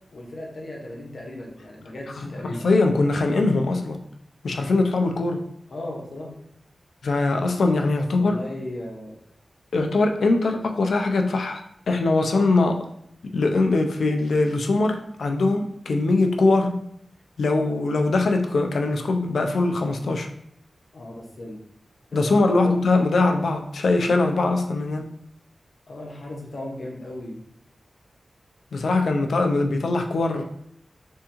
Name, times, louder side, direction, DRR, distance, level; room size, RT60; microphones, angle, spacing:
voice 1, 0.1-2.7 5.7-6.4 8.2-9.1 20.9-21.6 22.1-22.2 22.5-22.8 25.9-27.4, left 1 dB, 65° left, -1 dB, 0.9 m, -36 dB
voice 2, 2.2-4.0 4.4-5.4 7.0-8.4 9.7-12.9 13.2-16.7 17.4-20.3 22.1-25.1 28.7-30.4, left 3 dB, 85° left, 4 dB, 0.4 m, -22 dB
3.5 x 3.4 x 3.0 m, 0.72 s
wide cardioid pair, 100°, 0 cm